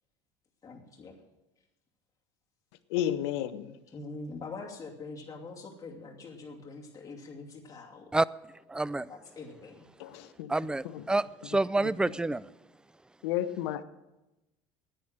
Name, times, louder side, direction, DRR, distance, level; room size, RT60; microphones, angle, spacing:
voice 1, 0.6-1.2 3.9-8.1 9.1-9.9, left 3 dB, 25° left, 2.6 m, -44 dB
voice 2, 2.9-3.7 10.0-10.5 13.2-13.8, left 11 dB, 75° left, 0.9 m, -31 dB
voice 3, 8.7-9.1 10.5-12.5, right 2 dB, 5° right, 0.3 m, -28 dB
10.5 x 9.2 x 8.9 m
hypercardioid pair, 85°, 14 cm